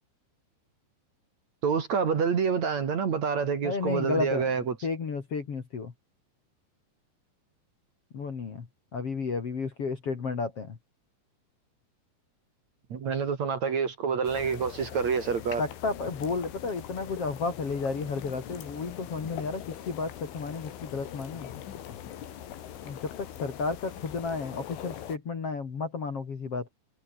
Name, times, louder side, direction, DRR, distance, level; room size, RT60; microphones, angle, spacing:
voice 1, 1.6-4.8 12.9-15.6, right 6 dB, 45° right, 2.9 m, -27 dB
voice 2, 3.6-4.5 4.8-5.9 8.1-8.7 8.9-10.8 15.6-21.5 22.8-26.7, left 4 dB, 40° left, 2.7 m, -32 dB
sound 1, 14.2-25.2, left 10 dB, 90° left, 5.1 m, -42 dB
omnidirectional pair, 5.4 m